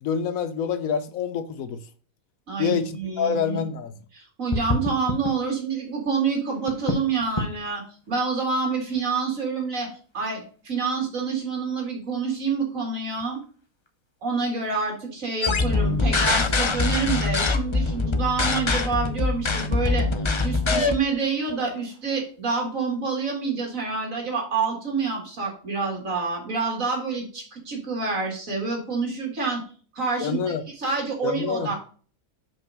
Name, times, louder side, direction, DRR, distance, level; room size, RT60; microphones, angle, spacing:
voice 1, 0.0-1.8 2.6-3.9 30.2-30.6 31.2-31.7, left 7 dB, 70° left, 1.0 m, -27 dB
voice 2, 2.5-3.6 4.1-9.9 10.1-13.4 14.2-20.1 20.4-29.6 29.9-31.8, right 4 dB, 65° right, 2.6 m, -27 dB
sound 1, 4.5-23.0, left 2 dB, 25° left, 0.8 m, -38 dB
sound 2, 15.4-21.0, left 3 dB, 45° left, 0.4 m, -23 dB
5.3 x 4.6 x 6.2 m
omnidirectional pair, 1.5 m